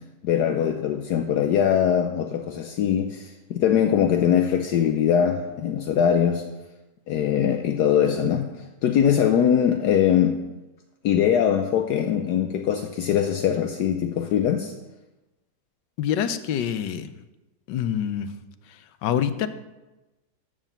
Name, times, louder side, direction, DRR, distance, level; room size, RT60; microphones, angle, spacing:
voice 1, 0.2-6.4 7.1-8.5 8.8-10.4 11.0-14.7, left 9 dB, 70° left, 6 dB, 1.2 m, -22 dB
voice 2, 16.0-17.1 17.7-18.3 19.0-19.5, left 9 dB, 90° left, 12 dB, 1.3 m, -25 dB
12.5 x 5.0 x 7.2 m, 1.1 s
omnidirectional pair, 1.9 m